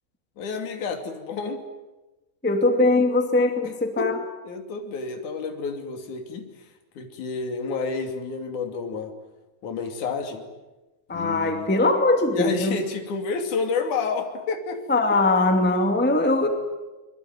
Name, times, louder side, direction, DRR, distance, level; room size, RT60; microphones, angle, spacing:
voice 1, 0.4-1.6 4.0-4.1 4.4-6.4 7.0-9.1 9.6-10.4 11.1-11.7 12.3-14.8, left 4 dB, 45° left, 5 dB, 3.7 m, -29 dB
voice 2, 2.4-4.2 11.1-12.8 14.9-16.5, left 2 dB, 10° left, 5 dB, 0.5 m, -21 dB
26.0 x 22.0 x 9.6 m, 1.1 s
omnidirectional pair, 5.4 m